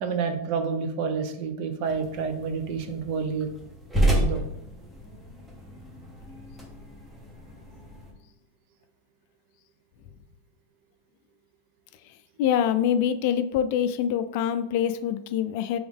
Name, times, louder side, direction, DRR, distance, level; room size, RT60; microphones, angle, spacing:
voice 1, 0.0-3.5 4.0-4.4, right 5 dB, 50° right, 6 dB, 0.6 m, -29 dB
sound 1, 1.8-8.1, right 1 dB, 10° right, 0.8 m, -31 dB
voice 2, 12.4-15.8, left 9 dB, 55° left, 11 dB, 0.3 m, -25 dB
3.6 x 3.0 x 3.5 m, 0.82 s
supercardioid pair, 150°, 0 cm